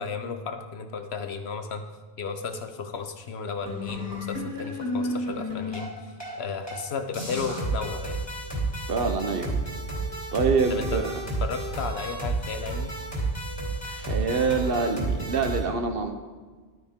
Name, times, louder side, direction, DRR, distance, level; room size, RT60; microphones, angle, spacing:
voice 1, 0.0-1.8 2.2-5.9 6.4-8.2 10.7-11.0 11.4-12.9, left 5 dB, 80° left, 8 dB, 1.2 m, -34 dB
sound 1, 3.6-6.4 6.7-6.8 7.1-15.6, right 2 dB, 15° left, 2.9 m, -31 dB
voice 2, 8.7-9.6 10.3-11.2 13.9-16.1, right 4 dB, 65° right, 6 dB, 1.1 m, -26 dB
12.0 x 9.2 x 3.6 m, 1.4 s
omnidirectional pair, 1.1 m